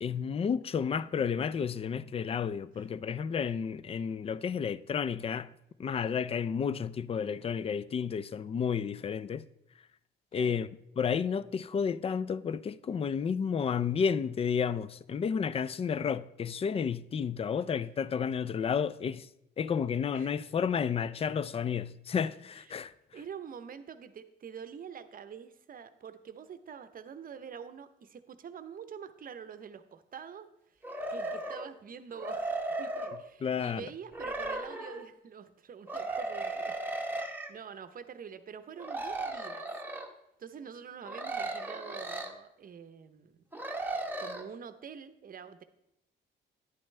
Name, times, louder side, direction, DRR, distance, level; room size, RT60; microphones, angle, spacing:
voice 1, 0.0-5.5 5.8-9.4 10.3-10.7 11.0-19.3 19.6-22.9 33.4-33.8, left 7 dB, 30° left, 0.4 m, -31 dB
voice 2, 23.1-30.8 31.1-32.5 32.8-36.7 37.0-39.7 40.4-43.4 44.2-45.6, right 7 dB, 45° right, 0.7 m, -46 dB
sound 1, 30.8-31.7 32.1-33.2 34.1-35.0 35.9-37.5 38.8-40.1 41.0-42.3 43.5-44.4, right 2 dB, 10° right, 1.1 m, -36 dB
11.0 x 8.7 x 3.2 m
cardioid pair, 90°, 20 cm